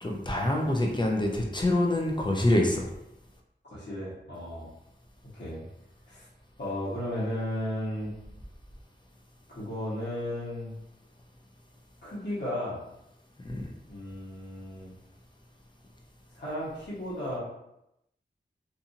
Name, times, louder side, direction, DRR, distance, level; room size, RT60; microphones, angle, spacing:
voice 1, 0.0-2.9 13.4-13.7, left 1 dB, 25° left, 1 dB, 0.6 m, -26 dB
voice 2, 3.6-4.7 5.3-5.6 6.1-6.3 6.6-8.1 9.5-10.7 12.0-12.8 13.9-14.9 16.3-17.4, left 1 dB, 65° left, -8 dB, 1.2 m, -34 dB
2.7 x 2.6 x 2.6 m, 0.85 s
wide cardioid pair, 65°, 19 cm